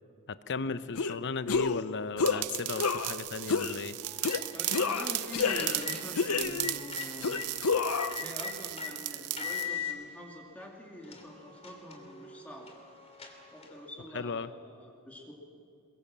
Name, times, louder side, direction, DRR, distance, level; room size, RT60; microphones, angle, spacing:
voice 1, 0.3-4.0 14.1-14.5, left 4 dB, 55° left, 13 dB, 0.8 m, -35 dB
sound 1, 1.0-1.2 1.5-1.8 2.2-2.4 2.8-3.2 3.5-3.8 4.2-4.4 4.7-5.9 6.2-6.8 7.2-8.2, left 5 dB, 80° left, 0.8 m, -29 dB
sound 2, 2.2-9.7, right 17 dB, 90° right, 0.6 m, -37 dB
sound 3, 4.0-7.5 7.9-8.9 9.4-9.9 10.6-10.7 11.0-13.9, left 6 dB, 30° left, 3.0 m, -41 dB
voice 2, 4.5-7.4 8.2-12.7 13.5-15.3, left 1 dB, 5° left, -1 dB, 2.5 m, -45 dB
23.0 x 22.5 x 7.4 m, 2.5 s
head